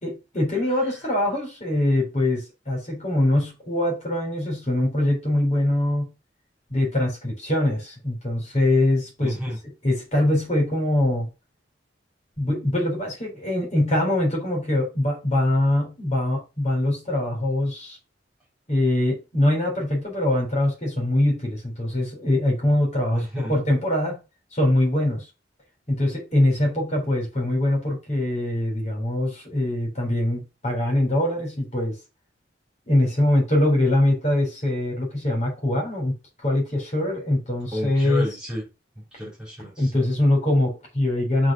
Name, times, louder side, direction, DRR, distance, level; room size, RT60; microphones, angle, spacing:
voice 1, 0.0-6.1 6.7-9.4 9.8-11.3 12.4-18.0 18.7-24.2 24.5-25.3 25.9-32.0 32.9-36.1 36.4-38.3 39.8-41.5, left 1 dB, 40° left, 4.0 m, -23 dB
voice 2, 9.2-9.6 23.1-23.5 37.7-38.6 39.1-39.9, equal, 5° right, 3.7 m, -31 dB
6.3 x 4.2 x 6.1 m
head